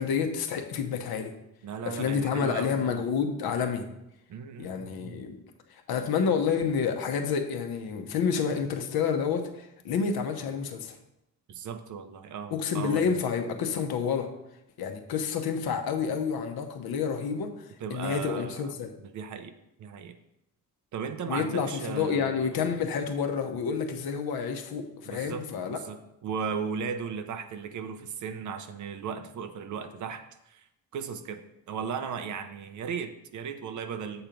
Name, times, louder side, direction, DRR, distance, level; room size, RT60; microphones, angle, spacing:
voice 1, 0.0-1.3 1.9-3.9 4.6-5.4 5.7-11.0 12.5-14.3 14.8-18.9 21.3-25.8, left 6 dB, 80° left, 5 dB, 1.0 m, -29 dB
voice 2, 1.6-3.0 4.3-5.2 11.5-13.2 17.8-18.7 19.0-19.5 19.8-20.2 20.9-22.6 25.0-30.7 30.9-34.3, right 6 dB, 55° right, 9 dB, 0.6 m, -36 dB
8.0 x 4.4 x 5.1 m, 0.86 s
cardioid pair, 175°, 37 cm